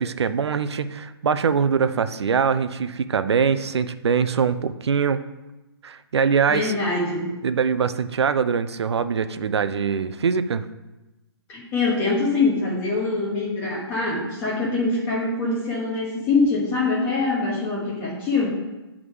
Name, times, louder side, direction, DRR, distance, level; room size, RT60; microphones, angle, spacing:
voice 1, 0.0-5.2 5.8-6.7 7.4-10.7, right 6 dB, 75° right, 12 dB, 0.5 m, -23 dB
voice 2, 6.5-7.3 11.5-18.5, left 3 dB, 15° left, -4 dB, 1.1 m, -24 dB
7.9 x 3.6 x 4.8 m, 1.1 s
hypercardioid pair, 165°, 14 cm